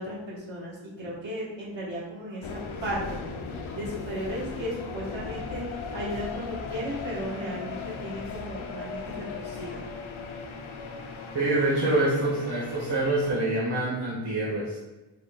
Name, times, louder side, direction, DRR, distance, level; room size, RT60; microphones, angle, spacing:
voice 1, 0.0-3.4 3.7-9.8, equal, 75° right, -6 dB, 1.5 m, -35 dB
sound 1, 2.4-13.3, left 4 dB, 85° left, 0.6 m, -38 dB
voice 2, 11.3-14.8, right 2 dB, 60° right, -6 dB, 1.3 m, -26 dB
5.5 x 2.3 x 3.5 m, 1.1 s
wide cardioid pair, 100°, 46 cm